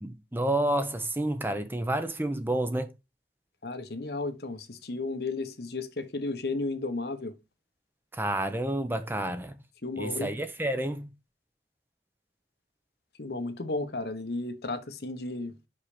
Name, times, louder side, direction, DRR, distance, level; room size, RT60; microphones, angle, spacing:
voice 1, 0.0-2.9 8.1-9.6 10.0-11.1, right 1 dB, 10° right, 0.7 m, -29 dB
voice 2, 3.6-7.3 9.8-10.3 13.2-15.6, left 2 dB, 65° left, 1.0 m, -33 dB
5.6 x 5.5 x 4.9 m
head